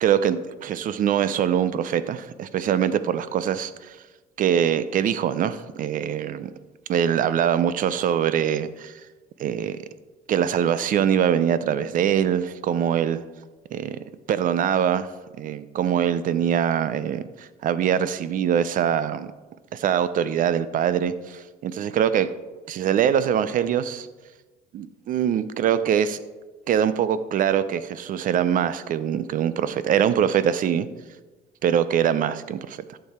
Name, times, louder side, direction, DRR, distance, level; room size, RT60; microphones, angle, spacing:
voice 1, 0.0-4.0 4.4-6.5 6.9-8.9 9.4-9.8 10.3-13.2 13.7-14.0 14.3-15.1 15.4-19.3 19.7-22.3 22.7-24.1 24.7-26.2 26.7-30.9 31.6-33.0, right 9 dB, 55° right, 14 dB, 0.5 m, -23 dB
11.5 x 6.7 x 4.3 m, 1.2 s
cardioid pair, 110°, 17 cm